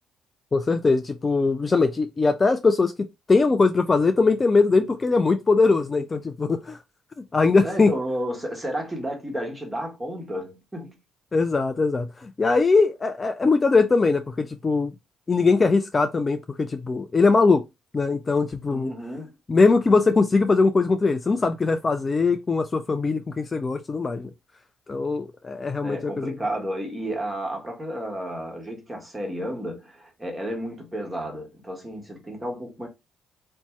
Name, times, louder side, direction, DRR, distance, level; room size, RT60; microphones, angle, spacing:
voice 1, 0.5-2.9 3.3-6.8 7.3-7.9 11.3-14.9 15.3-17.6 17.9-18.9 19.5-24.3 24.9-26.3, left 4 dB, 35° left, 0.3 m, -21 dB
voice 2, 7.6-11.0 18.7-19.3 25.8-32.9, right 1 dB, 15° right, 1.2 m, -32 dB
2.7 x 2.2 x 2.9 m
hypercardioid pair, 45°, 0 cm